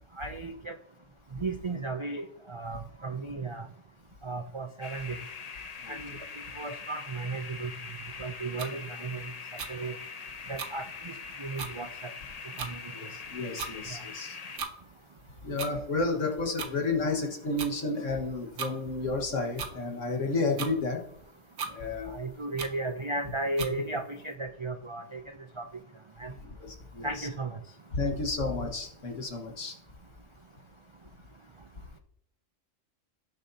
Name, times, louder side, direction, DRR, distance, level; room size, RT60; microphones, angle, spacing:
voice 1, 0.2-0.8 1.4-3.7 4.2-5.2 5.9-6.1 6.6-7.7 8.2-9.3 9.7-10.0 10.5-11.1 11.4-12.1 12.6-12.8 13.9-14.0 22.1-25.2 25.6-25.7 26.2-26.3 27.0-27.6, right 3 dB, 50° right, 7 dB, 0.3 m, -35 dB
sound 1, 4.8-14.6, left 5 dB, 40° left, 0.6 m, -43 dB
sound 2, 8.6-8.7 9.6-9.7 10.6-10.7 11.2-11.3 11.6-11.7 12.6-12.7 13.6-13.7 14.6-14.7 15.6-15.7 16.6-16.7 17.6-17.7 18.6-18.7 19.6-19.7 20.6-20.7 21.6-21.7 22.6-22.7 23.6-23.7, right 5 dB, 70° right, 1.3 m, -36 dB
voice 2, 12.9-14.4 15.4-21.0 21.7-22.3 26.4-27.3 27.9-29.8, left 3 dB, 75° left, 1 dB, 1.9 m, -31 dB
17.5 x 6.8 x 2.8 m, 0.72 s
omnidirectional pair, 1.3 m